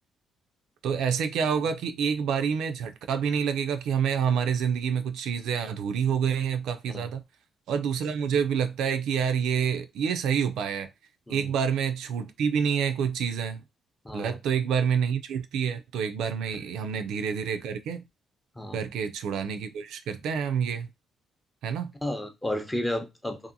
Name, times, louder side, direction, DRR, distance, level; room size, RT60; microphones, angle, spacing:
voice 1, 0.8-7.2 7.7-10.9 11.3-13.6 14.1-18.0 18.7-20.9 21.6-21.9, right 7 dB, 80° right, 0.3 m, -27 dB
voice 2, 14.0-14.4 18.5-18.8 22.0-23.5, left 1 dB, 10° left, 0.6 m, -32 dB
2.7 x 2.5 x 2.6 m
cardioid pair, 90°, 0 cm